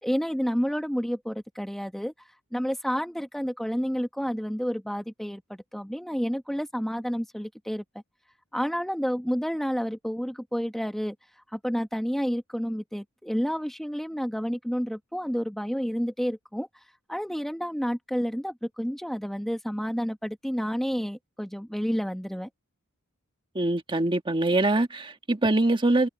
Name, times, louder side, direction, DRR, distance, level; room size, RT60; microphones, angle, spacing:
voice 1, 0.0-2.1 2.5-5.4 5.7-7.8 8.5-11.1 11.5-16.7 17.1-22.5, equal, ahead, 1.2 m, -30 dB
voice 2, 23.5-26.1, right 2 dB, 20° right, 1.5 m, -23 dB
head